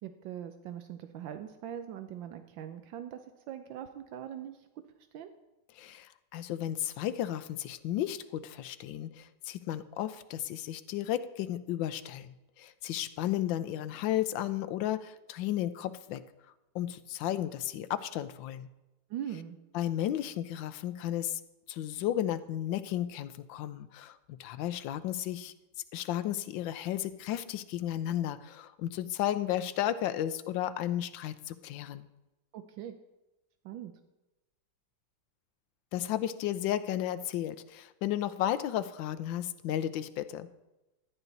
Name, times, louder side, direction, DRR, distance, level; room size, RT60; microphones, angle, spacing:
voice 1, 0.0-3.2 3.5-4.7 5.1-5.3 19.1-19.6 32.5-32.9 33.6-33.9, right 10 dB, 80° right, 9 dB, 1.4 m, -41 dB
voice 2, 5.7-16.2 16.7-18.7 19.7-21.4 21.7-25.5 25.9-32.1 35.9-40.5, left 12 dB, 80° left, 13 dB, 1.4 m, -33 dB
13.0 x 10.0 x 4.0 m, 1.0 s
omnidirectional pair, 2.1 m